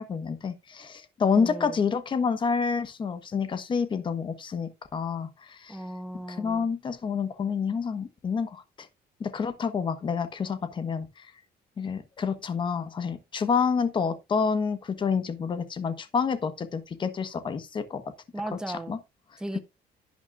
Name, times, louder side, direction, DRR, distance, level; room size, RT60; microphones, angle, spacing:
voice 1, 0.0-5.8 6.4-8.9 9.2-11.1 11.8-18.0 18.9-19.0, left 6 dB, 30° left, 1.2 m, -28 dB
voice 2, 1.3-1.8 5.7-6.7 18.3-19.0 19.4-19.6, right 1 dB, 5° right, 0.9 m, -36 dB
11.0 x 9.4 x 2.5 m
cardioid pair, 160°, 17 cm